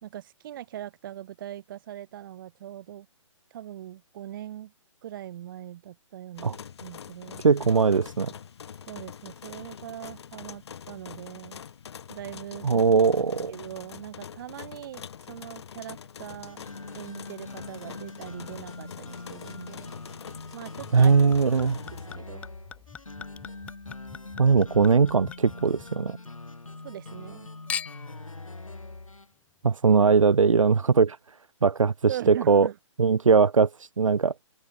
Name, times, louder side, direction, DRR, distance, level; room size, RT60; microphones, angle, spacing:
voice 1, 0.0-3.1 3.5-4.7 5.0-6.5 6.8-7.4 8.9-11.6 12.1-12.8 13.5-16.6 16.9-19.9 20.5-21.1 21.6-22.4 26.8-27.5 32.1-32.7, right 12 dB, 40° right, 1.7 m, -41 dB
sound 1, 6.4-22.1, left 8 dB, 55° left, 3.0 m, -44 dB
voice 2, 7.4-8.3 12.6-13.5 20.9-21.8 24.4-26.2 29.6-31.2 31.6-32.7 33.0-34.3, right 5 dB, 75° right, 0.8 m, -20 dB
sound 2, 16.5-29.3, left 3 dB, 85° left, 4.5 m, -43 dB
Chink clink / Liquid, 20.8-26.3 26.7-27.3 27.7-28.2 28.9-29.0, left 7 dB, 10° left, 0.6 m, -41 dB
open air
figure-of-eight pair, 135°, 17 cm